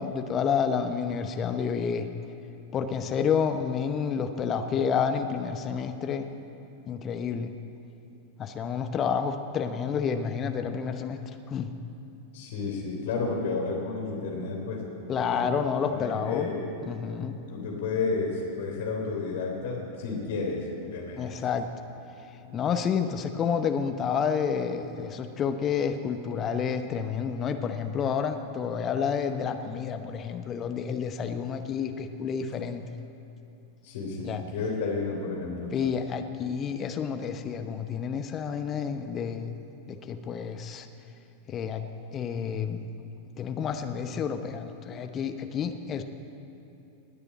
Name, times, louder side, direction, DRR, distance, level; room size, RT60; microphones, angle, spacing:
voice 1, 0.0-2.1 2.7-6.3 6.9-7.5 8.4-11.2 11.5-11.7 15.1-16.5 16.9-17.4 21.1-21.7 22.5-32.8 34.2-34.4 35.7-39.6 39.9-40.9 41.5-41.8 42.1-42.9 43.4-46.0, left 7 dB, 30° left, 7 dB, 0.9 m, -29 dB
voice 2, 12.3-15.5 15.9-16.6 17.5-21.4 22.4-22.6 33.8-35.7, left 4 dB, 55° left, 0 dB, 3.4 m, -32 dB
19.5 x 6.9 x 8.5 m, 3.0 s
figure-of-eight pair, 90°, 0 cm